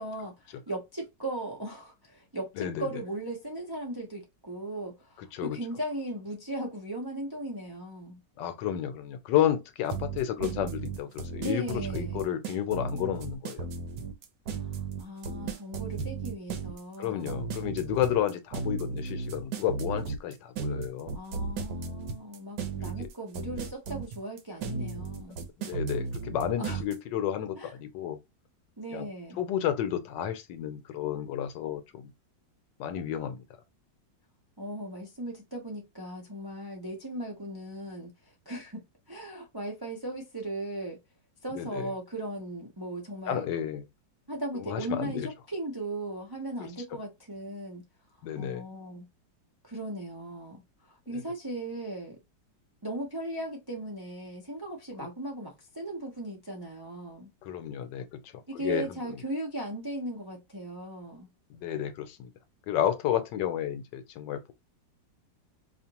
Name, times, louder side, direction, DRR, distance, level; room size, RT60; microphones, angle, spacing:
voice 1, 0.0-8.2 11.4-12.3 14.6-14.7 15.0-17.5 21.1-25.4 26.6-26.8 27.6-27.7 28.8-29.4 34.6-41.0 41.4-43.5 44.3-47.8 48.3-49.1 49.6-50.6 50.9-52.2 52.8-57.3 58.5-61.3, right 1 dB, 35° right, 0.3 m, -37 dB
voice 2, 2.6-2.9 5.3-5.6 8.4-13.7 17.0-21.2 22.8-23.1 25.6-28.2 28.9-29.1 29.4-32.1 32.8-33.4 41.5-41.9 43.3-43.8 44.6-45.3 46.6-46.7 48.2-48.7 51.1-51.2 57.4-58.2 58.5-59.0 61.5-62.3 62.7-64.5, left 10 dB, 80° left, 1.3 m, -31 dB
sound 1, 9.9-26.9, right 4 dB, 70° right, 1.2 m, -35 dB
4.9 x 2.5 x 2.9 m
omnidirectional pair, 1.9 m